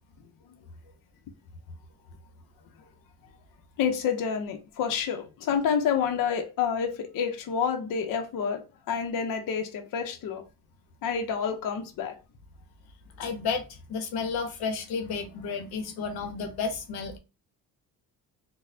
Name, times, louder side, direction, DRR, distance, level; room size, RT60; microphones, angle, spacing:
voice 1, 3.8-10.4 11.0-12.1, left 7 dB, 60° left, 0.6 m, -28 dB
voice 2, 13.2-17.2, left 5 dB, 85° left, 0.8 m, -32 dB
3.9 x 2.1 x 2.6 m
cardioid pair, 140°, 37 cm